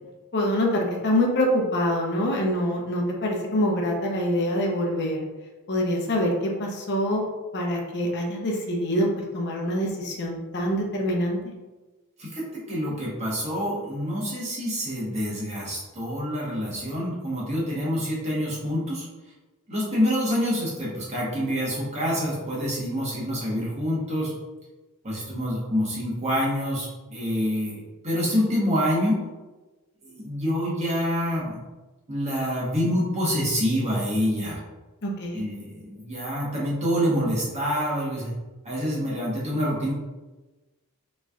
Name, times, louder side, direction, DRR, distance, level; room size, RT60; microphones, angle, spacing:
voice 1, 0.3-5.2 5.7-7.2 7.5-9.1 9.3-11.4 35.0-35.4, equal, 50° left, 0 dB, 0.7 m, -25 dB
voice 2, 12.2-19.0 19.7-24.3 25.0-29.2 30.0-31.6 32.1-34.6 35.3-38.3 38.6-39.9, equal, 30° right, -6 dB, 1.1 m, -27 dB
3.8 x 3.1 x 2.4 m, 1.2 s
head